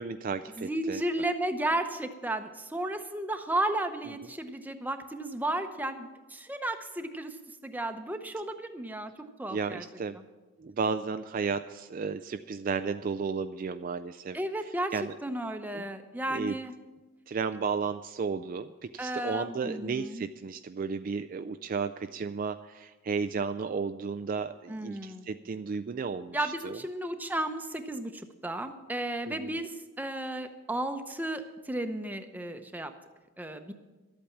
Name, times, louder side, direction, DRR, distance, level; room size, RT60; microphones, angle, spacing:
voice 1, 0.0-1.0 9.5-10.2 10.6-14.4 14.9-15.1 15.7-15.9 16.3-16.6 17.3-26.8 29.3-29.6, right 5 dB, 40° right, 10 dB, 0.3 m, -33 dB
voice 2, 0.6-7.4 7.6-9.1 9.4-9.8 10.2-10.3 14.3-14.9 15.2-16.7 19.0-20.2 24.7-25.3 26.3-32.9 33.4-33.7, right 1 dB, 10° right, 7 dB, 0.7 m, -33 dB
12.5 x 8.5 x 7.2 m, 1.2 s
head